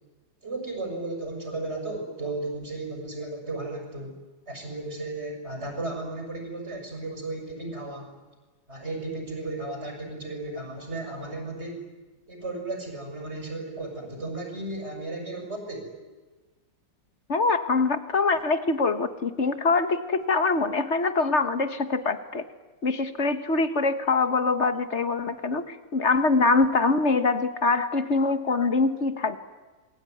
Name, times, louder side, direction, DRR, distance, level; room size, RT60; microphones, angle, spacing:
voice 1, 0.4-4.2 4.5-8.1 8.7-11.9 12.3-15.9, right 2 dB, 35° right, 3 dB, 6.7 m, -34 dB
voice 2, 17.3-22.4 22.8-29.4, left 3 dB, 40° left, 10 dB, 1.6 m, -24 dB
28.0 x 22.0 x 9.4 m, 1.3 s
omnidirectional pair, 2.0 m